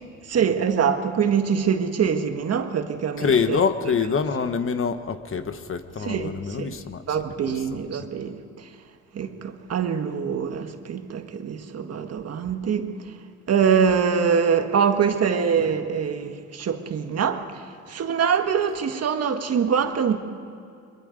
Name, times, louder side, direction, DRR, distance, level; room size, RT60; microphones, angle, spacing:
voice 1, 0.3-3.6 6.0-6.3 6.6-6.7 7.1-8.4 9.1-12.9 13.5-17.4 17.9-20.2, right 7 dB, 55° right, 1.6 m, -24 dB
voice 2, 3.2-7.0 7.5-7.6, left 6 dB, 45° left, 1.2 m, -25 dB
23.0 x 22.5 x 5.2 m
cardioid pair, 90°, 30 cm